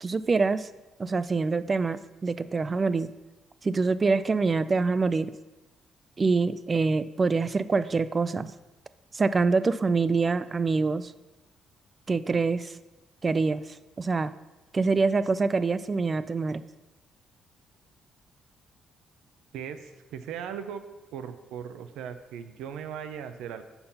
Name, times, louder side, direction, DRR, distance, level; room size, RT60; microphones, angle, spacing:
voice 1, 0.0-0.7 1.0-3.1 3.6-5.3 6.2-8.5 9.1-11.1 12.1-12.7 13.2-13.6 14.0-14.3 14.7-16.6, right 4 dB, 30° right, 14 dB, 0.3 m, -25 dB
voice 2, 19.5-20.8 21.1-23.6, right 8 dB, 90° right, 10 dB, 0.6 m, -38 dB
6.8 x 5.5 x 5.5 m, 1.1 s
cardioid pair, 90°, 0 cm